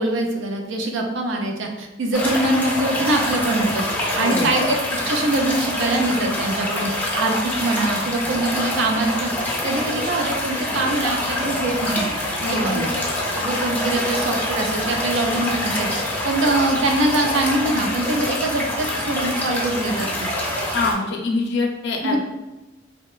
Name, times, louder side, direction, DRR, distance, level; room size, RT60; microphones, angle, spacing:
voice 1, 0.0-3.9 4.1-12.1 12.4-12.9 13.3-20.3 22.0-22.2, right 2 dB, 75° right, 2 dB, 0.4 m, -23 dB
sound 1, 2.1-20.9, left 1 dB, 10° left, 0.4 m, -25 dB
voice 2, 12.5-12.9 20.7-22.2, left 3 dB, 60° left, 0 dB, 0.5 m, -24 dB
2.8 x 2.2 x 2.3 m, 1.0 s
head